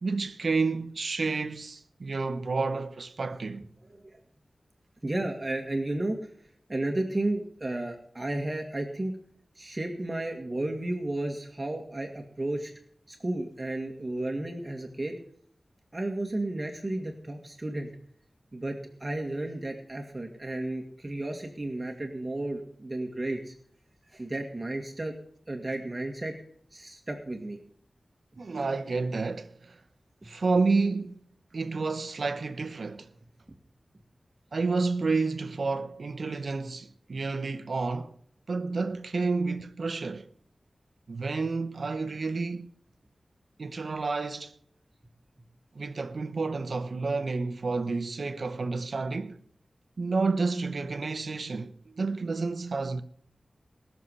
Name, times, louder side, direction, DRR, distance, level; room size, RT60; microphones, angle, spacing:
voice 1, 0.0-3.7 28.4-29.8 30.2-31.2 31.5-33.1 34.5-38.1 38.5-40.3 41.1-42.7 43.6-44.5 45.7-49.4 50.0-53.0, right 4 dB, 70° right, 1.1 m, -30 dB
voice 2, 5.0-6.2 6.7-9.2 9.6-12.7 13.1-15.2 15.9-17.9 18.5-23.5 24.1-25.1 25.5-26.3 26.7-27.6 30.2-30.3, right 2 dB, 30° right, 2.0 m, -33 dB
20.5 x 7.0 x 5.5 m
wide cardioid pair, 85°, 0 cm